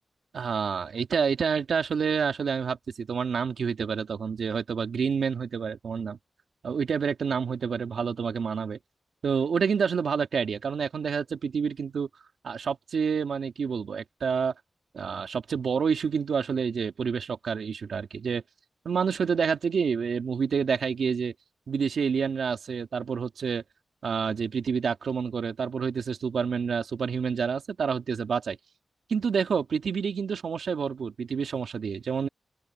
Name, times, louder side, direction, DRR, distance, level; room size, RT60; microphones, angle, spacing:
voice 1, 0.3-6.2 6.6-8.8 9.2-12.1 12.4-14.5 14.9-18.4 18.8-21.3 21.7-23.6 24.0-28.6 29.1-32.3, right 6 dB, 85° right, 2.4 m, -28 dB
open air
cardioid pair, 45°, 0 cm